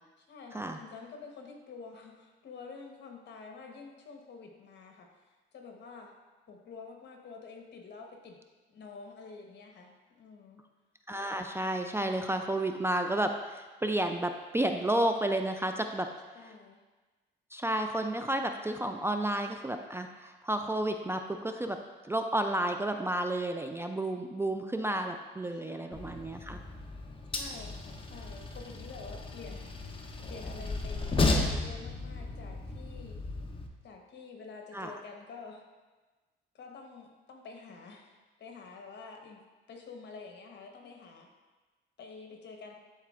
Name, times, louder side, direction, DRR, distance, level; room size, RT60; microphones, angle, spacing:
voice 1, 0.2-5.1 5.5-6.1 6.5-8.4 8.7-10.6 16.3-16.8 25.5-26.1 27.3-29.7 30.3-33.2 33.8-35.6 36.5-39.4 39.7-41.3 42.0-42.7, left 4 dB, 60° left, 2 dB, 1.1 m, -48 dB
voice 2, 11.1-16.1 16.4-16.5 17.5-21.8 22.0-26.6 34.7-35.0, right 1 dB, 10° right, 5 dB, 0.3 m, -31 dB
Train, 25.9-33.7, left 3 dB, 25° left, 0.7 m, -34 dB
11.0 x 4.2 x 2.5 m, 1.3 s
cardioid pair, 90°, 20 cm